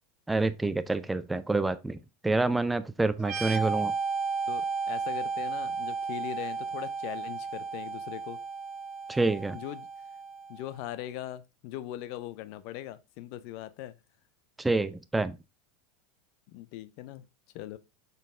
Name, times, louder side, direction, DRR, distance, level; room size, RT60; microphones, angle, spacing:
voice 1, 0.3-3.9 9.1-9.6 14.6-15.4, right 3 dB, 10° right, 0.5 m, -27 dB
sound 1, 3.2-10.7, right 5 dB, 45° right, 1.8 m, -34 dB
voice 2, 4.5-8.4 9.5-9.9 10.5-14.0 16.5-17.2 17.5-17.8, left 13 dB, 60° left, 0.6 m, -40 dB
6.5 x 4.1 x 3.6 m
hypercardioid pair, 100°, 0 cm